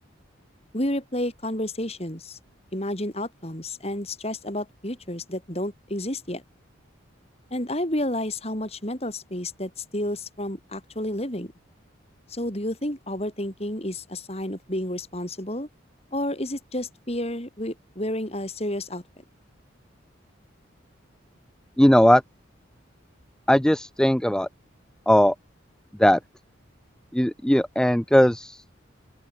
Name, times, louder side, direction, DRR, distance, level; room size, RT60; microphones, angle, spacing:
voice 1, 0.7-2.4 2.7-6.4 7.5-11.5 12.3-15.7 16.1-19.0, left 1 dB, 30° left, 5.1 m, -30 dB
voice 2, 21.8-22.2 23.5-24.5 25.1-25.3 26.0-26.2 27.1-28.7, equal, 5° left, 0.4 m, -18 dB
open air
head